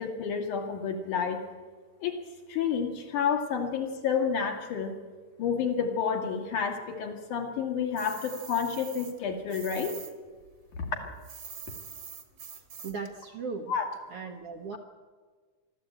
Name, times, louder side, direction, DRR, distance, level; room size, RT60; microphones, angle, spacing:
voice 1, 0.0-1.4 2.0-2.2 2.5-4.9 5.4-9.9 10.8-11.0 13.7-13.9, left 6 dB, 70° left, 3 dB, 3.6 m, -30 dB
sound 1, 8.0-10.1 10.4-13.1, right 7 dB, 45° right, 1.8 m, -44 dB
voice 2, 12.5-13.7 14.1-14.8, right 4 dB, 65° right, 4 dB, 1.6 m, -38 dB
23.0 x 13.0 x 8.9 m, 1.5 s
omnidirectional pair, 3.7 m